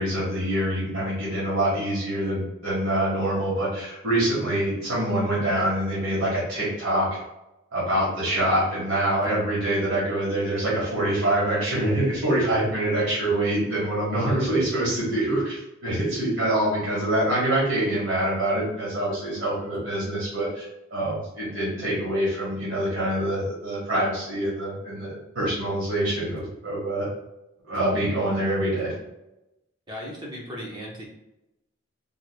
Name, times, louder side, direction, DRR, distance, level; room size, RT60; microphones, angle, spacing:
voice 1, 0.0-7.2 7.7-27.1 27.7-28.9, right 1 dB, 80° right, -8 dB, 1.5 m, -25 dB
voice 2, 29.9-31.0, equal, 20° right, -4 dB, 0.8 m, -36 dB
3.7 x 3.0 x 2.2 m, 0.92 s
head